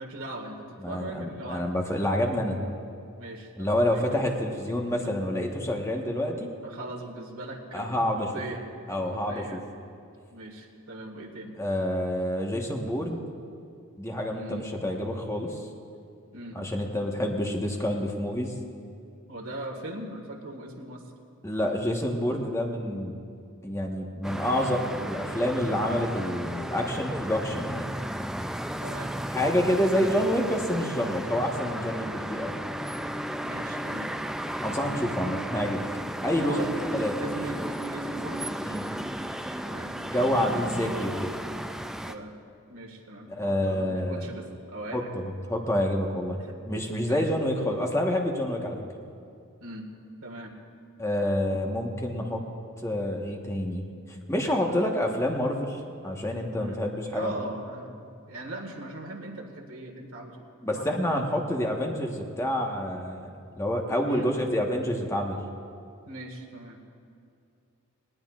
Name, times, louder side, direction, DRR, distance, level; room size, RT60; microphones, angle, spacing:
voice 1, 0.0-1.7 3.2-4.2 6.6-8.6 9.0-9.6 10.3-11.6 14.3-14.7 16.3-16.7 19.3-21.0 24.6-24.8 28.8-29.1 33.4-34.1 36.4-38.5 39.6-40.2 42.1-42.3 42.7-45.1 46.4-46.5 47.1-47.3 49.6-49.9 50.2-50.5 51.5-51.6 54.5-55.0 56.6-56.8 57.1-60.4 60.7-60.9 64.1-64.3 66.1-66.8, right 1 dB, 70° right, 1 dB, 1.7 m, -40 dB
voice 2, 0.8-2.6 3.6-6.5 7.7-8.3 8.9-9.6 11.6-13.2 14.0-15.6 16.5-18.5 21.4-23.1 23.6-27.9 29.3-32.5 34.6-35.8 36.2-36.6 36.9-37.1 38.6-38.8 40.1-41.3 43.4-44.3 44.9-45.0 45.5-46.4 46.7-48.8 51.0-52.4 52.8-53.8 54.3-57.4 60.6-65.4, left 1 dB, 15° left, 1 dB, 1.3 m, -28 dB
sound 1, 24.2-42.1, right 1 dB, ahead, 0.3 m, -34 dB
19.5 x 18.0 x 2.5 m, 2.4 s
head